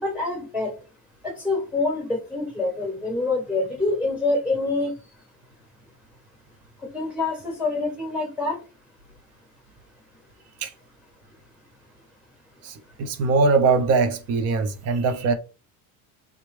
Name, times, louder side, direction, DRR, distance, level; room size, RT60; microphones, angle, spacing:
voice 1, 0.0-0.7 1.2-4.9 6.9-8.6, left 3 dB, 5° right, 1.0 m, -26 dB
voice 2, 12.6-15.3, right 4 dB, 40° right, 0.5 m, -21 dB
3.5 x 2.1 x 3.1 m
cardioid pair, 160°, 39 cm